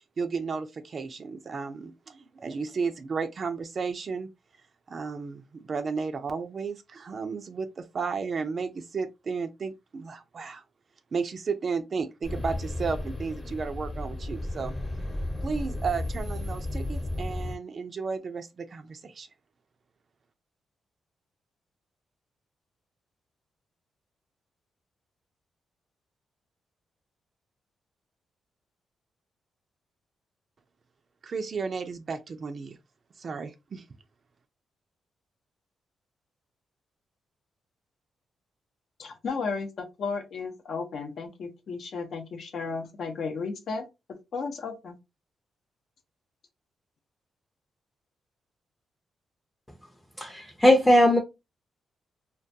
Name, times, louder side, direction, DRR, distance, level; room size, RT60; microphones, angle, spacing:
voice 1, 0.0-4.3 4.9-10.6 11.1-14.7 15.4-19.3 31.2-32.8 33.2-33.9, right 5 dB, 50° right, 0.3 m, -33 dB
sound 1, 12.2-17.6, left 1 dB, 25° left, 0.9 m, -33 dB
voice 2, 39.0-43.8 44.3-45.0, left 4 dB, 65° left, 0.7 m, -34 dB
voice 3, 50.2-51.2, left 1 dB, 10° left, 0.5 m, -19 dB
2.2 x 2.2 x 2.6 m
cardioid pair, 70°, 0 cm